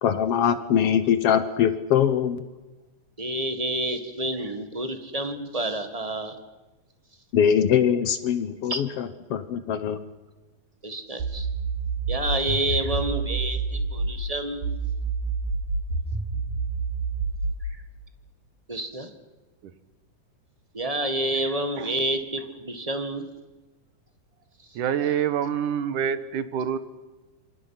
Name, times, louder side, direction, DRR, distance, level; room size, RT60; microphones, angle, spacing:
voice 1, 0.0-2.5 7.3-10.0, left 8 dB, 65° left, 12 dB, 1.5 m, -22 dB
voice 2, 3.2-6.4 8.7-8.8 10.8-11.5 12.1-14.7 17.6-17.8 18.7-19.1 20.7-23.3 25.0-25.1, right 1 dB, 25° right, 7 dB, 0.7 m, -29 dB
sound 1, 11.2-14.2 14.6-17.6, right 4 dB, 90° right, 5.6 m, -28 dB
voice 3, 24.8-26.8, right 8 dB, 70° right, 13 dB, 2.7 m, -26 dB
27.0 x 26.0 x 5.9 m, 1.2 s
omnidirectional pair, 3.9 m